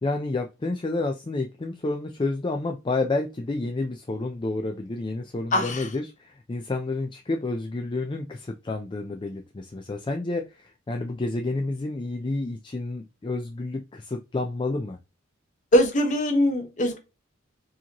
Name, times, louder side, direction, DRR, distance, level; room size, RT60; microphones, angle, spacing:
voice 1, 0.0-15.0, left 2 dB, 25° left, 0.4 m, -30 dB
voice 2, 5.5-5.9 15.7-17.0, equal, 40° left, 0.9 m, -22 dB
4.6 x 3.0 x 2.9 m
head